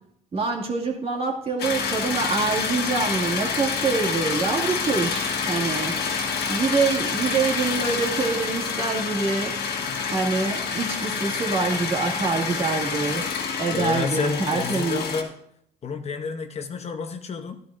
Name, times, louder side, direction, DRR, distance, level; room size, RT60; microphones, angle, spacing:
voice 1, 0.3-6.2 6.5-9.6 10.1-13.3 13.6-15.1, right 4 dB, 35° right, 0 dB, 2.1 m, -25 dB
sound 1, 1.6-15.2, left 5 dB, 70° left, 1.6 m, -28 dB
voice 2, 13.7-15.3 15.8-17.6, left 5 dB, 40° left, 6 dB, 0.8 m, -30 dB
13.0 x 12.0 x 2.6 m, 0.71 s
cardioid pair, 110°, 17 cm